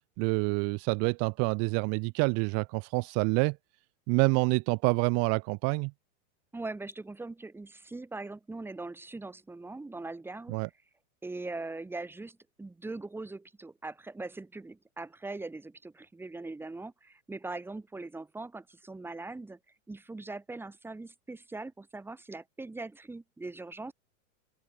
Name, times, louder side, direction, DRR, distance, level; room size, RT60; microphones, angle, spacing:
voice 1, 0.2-3.6 4.1-5.9 10.5-10.7, right 34 dB, 35° right, 1.0 m, -27 dB
voice 2, 6.5-10.6 11.2-19.6 19.9-23.9, right 3 dB, 5° right, 2.2 m, -41 dB
open air
supercardioid pair, 155°, 42 cm